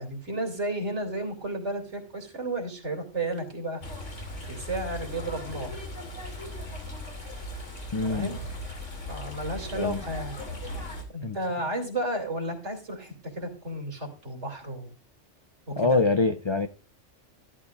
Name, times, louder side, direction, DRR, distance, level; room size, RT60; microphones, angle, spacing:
voice 1, 0.0-3.8 4.5-5.8 8.1-8.4 9.1-10.4 10.6-10.7 11.1-14.9 15.7-16.0, right 1 dB, 65° right, 3.0 m, -33 dB
sound 1, 3.8-11.0, left 1 dB, 75° left, 3.0 m, -38 dB
voice 2, 7.9-8.3 9.7-10.0 11.2-11.4 15.8-16.7, left 3 dB, 45° left, 0.3 m, -24 dB
13.5 x 12.0 x 2.5 m
omnidirectional pair, 1.3 m